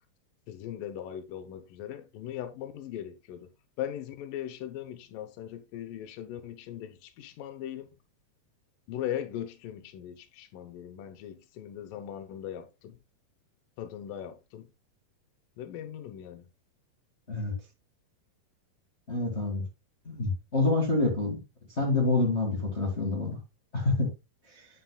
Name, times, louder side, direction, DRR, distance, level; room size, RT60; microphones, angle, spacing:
voice 1, 0.5-3.5 3.8-7.9 8.9-13.0 13.8-14.7 15.6-16.5, left 10 dB, 80° left, 2.6 m, -39 dB
voice 2, 19.1-19.6 20.0-21.4 21.8-23.4 23.7-24.1 24.5-24.6, left 3 dB, 25° left, 1.5 m, -27 dB
9.4 x 8.7 x 2.3 m
omnidirectional pair, 3.9 m